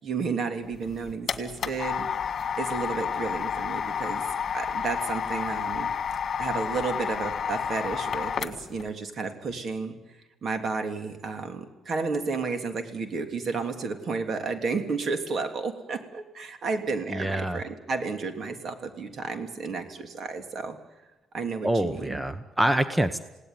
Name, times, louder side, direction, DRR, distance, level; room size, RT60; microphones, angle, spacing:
voice 1, 0.0-2.1 2.6-4.2 4.5-5.9 6.4-10.0 10.4-20.8 21.3-22.2, right 4 dB, 55° right, 6 dB, 3.0 m, -32 dB
sound 1, 0.7-8.8, left 7 dB, 50° left, 1.9 m, -30 dB
voice 2, 17.1-17.6 21.6-23.2, right 1 dB, 10° right, 11 dB, 1.1 m, -26 dB
28.5 x 18.0 x 9.8 m, 1.1 s
cardioid pair, 90°, 0 cm